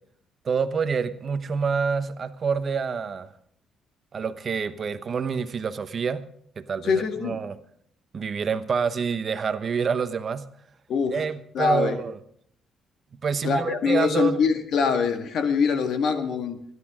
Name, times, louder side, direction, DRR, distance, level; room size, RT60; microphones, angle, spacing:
voice 1, 0.4-3.3 4.1-6.2 6.6-7.5 8.1-10.5 11.1-12.2 13.2-14.4, right 6 dB, 45° right, 11 dB, 0.9 m, -27 dB
voice 2, 6.8-7.4 10.9-11.2 11.5-12.0 13.4-16.6, left 5 dB, 70° left, 6 dB, 1.9 m, -24 dB
27.0 x 11.0 x 3.7 m, 0.65 s
cardioid pair, 90°, 0 cm